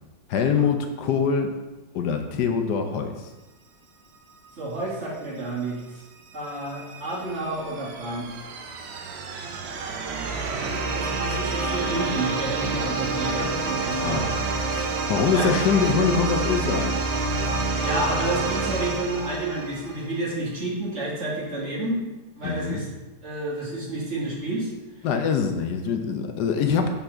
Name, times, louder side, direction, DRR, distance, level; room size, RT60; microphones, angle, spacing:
voice 1, 0.3-1.5 1.9-3.3 14.0-14.2 14.7-16.9 22.4-22.8 25.0-26.9, left 6 dB, 70° left, 5 dB, 1.2 m, -24 dB
voice 2, 4.6-6.0 6.3-8.4 10.4-14.3 15.2-15.5 17.5-22.0 22.4-22.9 23.2-24.7 25.9-26.0, right 2 dB, 40° right, -5 dB, 1.8 m, -30 dB
sound 1, 6.3-20.1, right 3 dB, 85° right, 1.5 m, -28 dB
5.6 x 4.0 x 6.0 m, 1.1 s
omnidirectional pair, 2.0 m